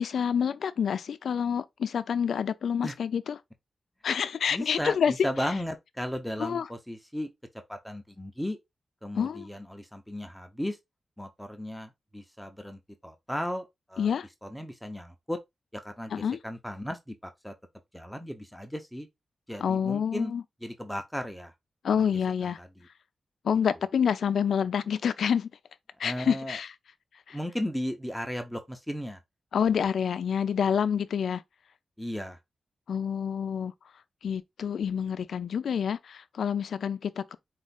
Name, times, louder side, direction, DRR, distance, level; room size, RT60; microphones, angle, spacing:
voice 1, 0.0-3.4 4.0-5.1 6.4-6.6 9.2-9.5 14.0-14.3 16.1-16.4 19.6-20.4 21.8-22.6 23.4-25.5 26.0-26.7 27.3-27.4 29.5-31.4 32.9-33.7 34.2-37.4, left 7 dB, 85° left, 0.4 m, -28 dB
voice 2, 4.5-7.3 7.7-8.6 9.0-10.8 11.2-14.1 14.4-15.4 15.7-17.5 17.9-19.1 19.5-20.3 20.6-21.5 21.9-22.1 22.4-22.9 26.0-26.6 27.3-29.2 32.0-32.4, equal, 5° left, 0.7 m, -35 dB
4.4 x 2.5 x 4.0 m
wide cardioid pair, 135°, 0 cm